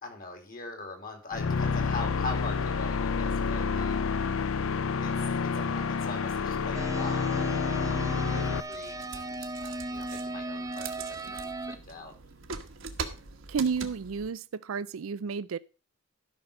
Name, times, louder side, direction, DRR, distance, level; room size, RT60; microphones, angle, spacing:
voice 1, 0.0-4.2 5.0-12.2, left 3 dB, 45° left, 2.9 m, -42 dB
sound 1, 1.3-8.6, left 5 dB, 80° left, 0.6 m, -29 dB
sound 2, 6.7-11.8, right 2 dB, 15° right, 0.5 m, -37 dB
sound 3, 8.7-14.3, right 5 dB, 70° right, 1.3 m, -42 dB
voice 2, 13.5-15.6, right 5 dB, 85° right, 0.5 m, -31 dB
12.0 x 5.9 x 5.0 m
head